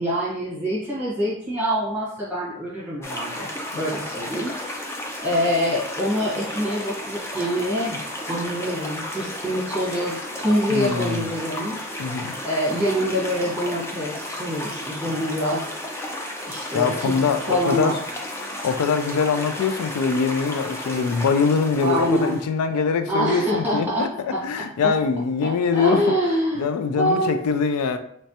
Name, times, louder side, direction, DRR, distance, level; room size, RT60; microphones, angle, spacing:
voice 1, 0.0-3.5 3.7-4.5 5.2-8.0 8.3-11.8 12.4-15.7 16.5-17.1 17.5-18.0 21.8-22.4 23.1-24.9 25.4-26.6 27.0-27.4, equal, 10° right, -7 dB, 1.3 m, -25 dB
sound 1, 3.0-22.5, left 1 dB, 10° left, 0.3 m, -33 dB
voice 2, 10.7-11.3 12.0-12.4 16.7-17.9 18.6-24.1 24.4-26.1 26.6-28.0, left 5 dB, 90° left, 8 dB, 0.3 m, -23 dB
3.2 x 3.1 x 2.8 m, 0.68 s
head